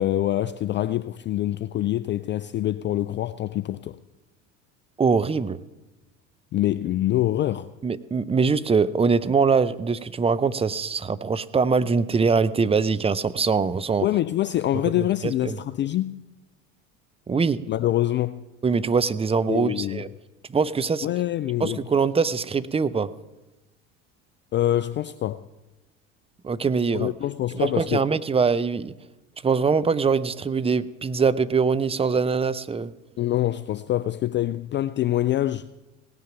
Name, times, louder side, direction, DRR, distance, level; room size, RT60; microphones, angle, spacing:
voice 1, 0.0-4.0 6.5-7.7 14.0-16.2 17.7-18.4 19.5-20.0 21.0-21.8 24.5-25.5 26.9-28.0 33.2-35.7, left 13 dB, 30° left, 0.4 m, -25 dB
voice 2, 5.0-5.6 7.8-14.1 15.2-15.6 17.3-17.6 18.6-20.1 20.5-21.1 21.6-23.1 26.4-27.1 27.5-28.9 29.4-32.9, right 5 dB, 15° right, 0.5 m, -23 dB
18.0 x 9.5 x 5.9 m
hypercardioid pair, 75°, 39 cm